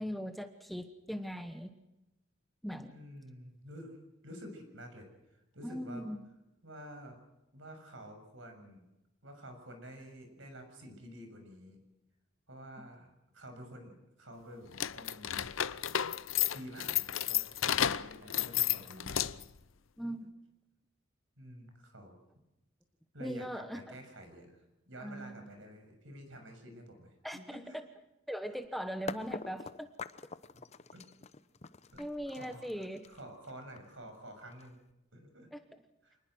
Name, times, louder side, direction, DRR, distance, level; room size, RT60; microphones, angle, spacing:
voice 1, 0.0-1.8 2.6-3.0 5.6-6.2 20.0-20.3 23.2-23.8 25.0-25.5 27.2-27.8 28.3-29.9 32.0-33.0 35.5-35.6, equal, ahead, 8 dB, 1.1 m, -40 dB
voice 2, 2.9-4.0 4.2-6.1 6.6-7.2 7.5-8.8 9.2-11.8 12.5-15.6 16.5-19.3 21.4-22.2 23.1-27.8 28.5-28.6 30.9-31.0 31.9-34.8 35.1-35.5 36.0-36.2, equal, 70° right, 5 dB, 6.8 m, -50 dB
sound 1, 14.7-19.6, left 11 dB, 75° left, 0.7 m, -32 dB
sound 2, 29.1-34.9, left 4 dB, 35° left, 0.8 m, -45 dB
27.0 x 20.0 x 6.3 m, 0.94 s
head